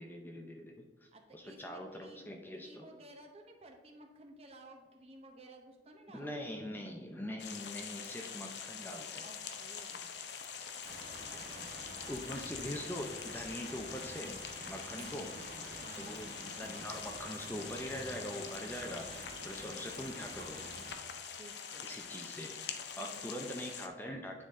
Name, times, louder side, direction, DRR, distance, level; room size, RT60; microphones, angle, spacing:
voice 1, 0.0-2.9 6.1-9.3 12.1-14.4 14.7-15.3 16.0-20.6 21.8-22.5 23.0-24.4, equal, 10° left, 2 dB, 0.5 m, -43 dB
voice 2, 1.1-2.2 2.5-6.4 9.2-10.1 11.3-11.8 13.6-13.9 14.9-15.2 15.8-16.2 21.3-22.0 23.0-23.3, right 1 dB, 35° right, 3 dB, 0.9 m, -55 dB
sound 1, 7.4-23.9, left 7 dB, 75° left, 0.6 m, -45 dB
sound 2, 10.8-20.9, right 2 dB, 65° right, 1.2 m, -49 dB
9.2 x 3.9 x 3.6 m, 1.3 s
head